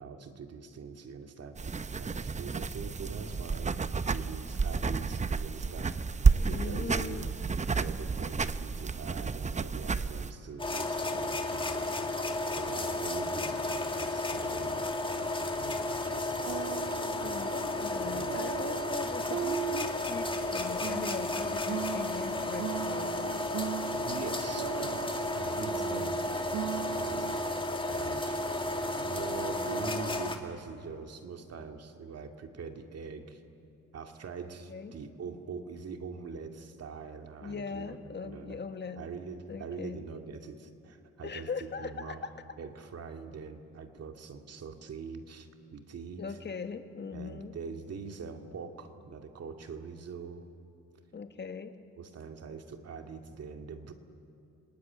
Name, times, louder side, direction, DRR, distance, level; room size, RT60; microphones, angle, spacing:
voice 1, 0.0-3.8 4.1-7.3 7.7-16.9 17.2-17.4 18.0-18.4 23.9-28.6 28.9-33.4 33.9-38.6 39.0-42.3 42.6-46.4 47.1-50.4 52.0-53.9, right 5 dB, 55° right, 5 dB, 2.3 m, -43 dB
sound 1, 1.6-10.3, right 4 dB, 25° right, 0.8 m, -30 dB
voice 2, 6.5-7.3 17.0-23.4 25.6-26.2 34.7-34.9 37.4-39.0 39.5-40.0 41.2-42.3 46.2-47.5 51.1-51.7, left 5 dB, 35° left, 8 dB, 1.8 m, -40 dB
sound 2, 10.6-30.4, left 2 dB, 15° left, 2.2 m, -33 dB
sound 3, 16.5-27.4, right 14 dB, 75° right, 0.7 m, -40 dB
28.0 x 19.0 x 9.6 m, 2.6 s
cardioid pair, 90°, 30 cm